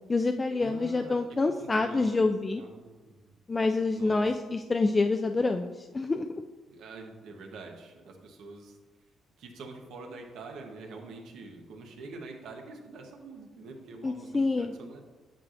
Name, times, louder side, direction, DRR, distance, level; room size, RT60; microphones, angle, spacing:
voice 1, 0.1-2.6 3.5-6.4 14.0-14.7, left 3 dB, 25° left, 5 dB, 0.3 m, -27 dB
voice 2, 0.6-3.3 3.9-4.4 6.7-8.7 9.4-15.0, right 3 dB, 80° right, 2 dB, 1.0 m, -46 dB
8.8 x 5.9 x 2.5 m, 1.2 s
cardioid pair, 90°, 0 cm